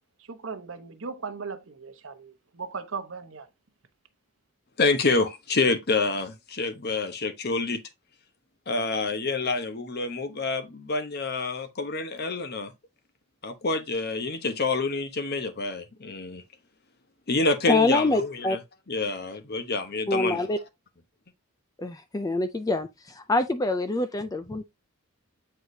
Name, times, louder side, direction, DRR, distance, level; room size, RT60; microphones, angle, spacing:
voice 1, 0.2-3.5, right 5 dB, 65° right, 1.0 m, -37 dB
voice 2, 4.8-7.8 8.7-12.7 13.4-16.4 17.3-18.6 18.9-20.4, left 3 dB, 50° left, 1.0 m, -27 dB
voice 3, 17.7-18.6 20.1-20.6 21.8-24.6, left 2 dB, 15° left, 0.4 m, -25 dB
8.0 x 4.5 x 2.7 m
head